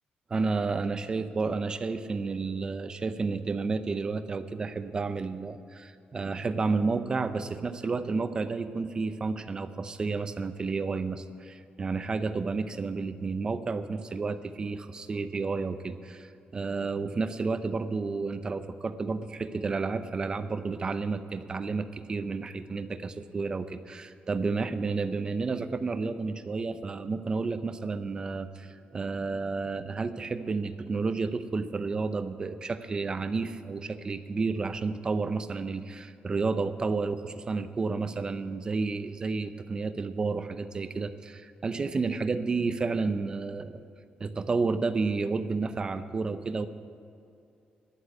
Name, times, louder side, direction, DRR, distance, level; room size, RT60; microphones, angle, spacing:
voice 1, 0.3-43.8 44.2-46.7, right 4 dB, 25° right, 11 dB, 0.5 m, -31 dB
10.5 x 8.0 x 9.2 m, 2.6 s
wide cardioid pair, 175°, 3 cm